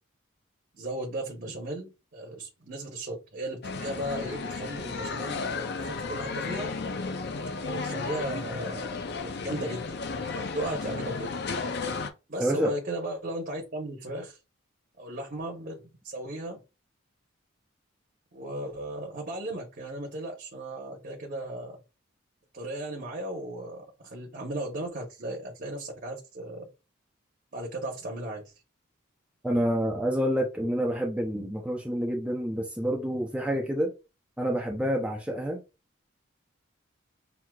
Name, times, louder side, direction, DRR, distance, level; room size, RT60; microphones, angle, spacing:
voice 1, 0.7-6.7 7.6-11.3 12.3-14.4 15.0-16.6 18.3-21.8 22.5-26.7 27.5-28.5, right 1 dB, 45° right, 0.9 m, -36 dB
sound 1, 3.6-12.1, left 4 dB, 50° left, 0.4 m, -34 dB
voice 2, 12.4-12.7 29.4-33.9 34.4-35.6, equal, 5° right, 0.5 m, -28 dB
6.0 x 2.7 x 2.3 m
head